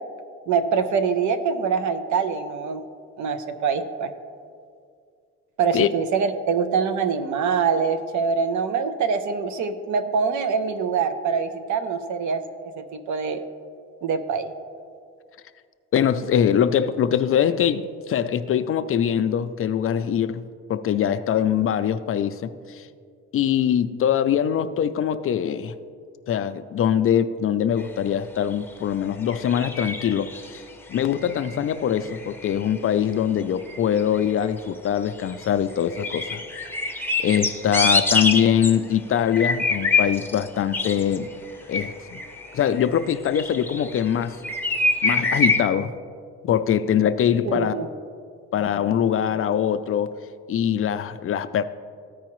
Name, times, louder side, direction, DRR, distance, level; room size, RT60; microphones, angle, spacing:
voice 1, 0.5-2.8 3.2-4.1 5.6-12.4 12.8-13.4 14.0-14.5 47.4-47.9, right 6 dB, 75° right, 9 dB, 0.7 m, -24 dB
voice 2, 15.9-20.4 20.7-22.8 23.3-25.7 26.3-30.6 30.9-36.4 37.2-41.3 41.7-42.2 42.5-44.4 45.0-45.9 46.4-47.7 48.5-50.1 50.5-51.6, left 9 dB, 45° left, 12 dB, 0.4 m, -23 dB
sound 1, 28.4-28.5 29.3-30.6 30.9-31.7 32.0-32.8 33.6-34.6 34.9-35.5 35.8-38.8 39.3-40.5 40.7-44.1 44.4-45.6, left 3 dB, 5° left, 0.7 m, -25 dB
14.0 x 4.8 x 3.0 m, 2.2 s
cardioid pair, 90°, 30 cm